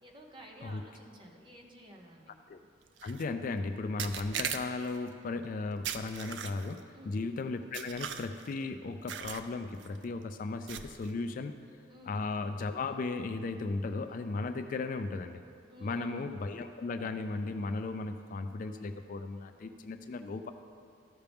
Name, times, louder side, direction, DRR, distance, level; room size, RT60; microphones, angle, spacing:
voice 1, 0.0-2.3 6.9-7.3 11.9-12.3 15.7-16.3, equal, 25° right, 1 dB, 1.0 m, -52 dB
voice 2, 3.0-11.6 12.1-15.4 15.8-20.5, left 3 dB, 45° left, 8 dB, 0.3 m, -36 dB
sound 1, 3.0-3.2 4.0-5.0 5.8-6.8 7.7-8.5 9.1-9.5 9.8-10.0 10.7-11.1, right 8 dB, 70° right, 0.4 m, -39 dB
14.0 x 5.7 x 3.5 m, 2.3 s
head